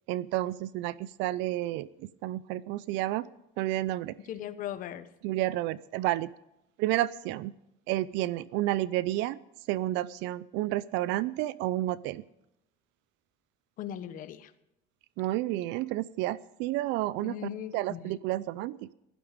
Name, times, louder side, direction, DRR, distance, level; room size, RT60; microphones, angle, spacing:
voice 1, 0.1-3.3 3.6-4.1 5.2-6.3 6.8-7.5 7.9-9.4 9.7-12.2 15.2-17.4 17.7-18.9, right 15 dB, 65° right, 19 dB, 0.5 m, -30 dB
voice 2, 4.3-5.1 13.8-14.5 17.2-18.1, left 10 dB, 40° left, 12 dB, 1.0 m, -38 dB
16.0 x 12.0 x 5.1 m, 0.86 s
cardioid pair, 160°, 20 cm